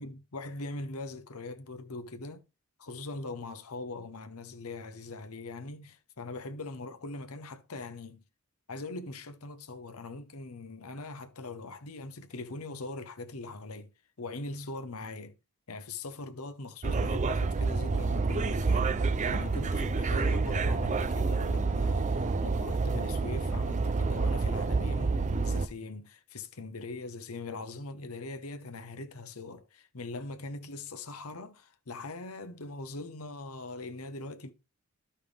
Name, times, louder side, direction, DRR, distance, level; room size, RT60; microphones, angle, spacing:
voice 1, 0.0-2.4 2.8-8.2 8.7-13.9 14.2-15.3 15.7-34.5, left 2 dB, 75° left, 1.0 m, -41 dB
sound 1, 16.8-25.7, right 4 dB, 35° right, 0.5 m, -28 dB
12.0 x 5.6 x 3.5 m
head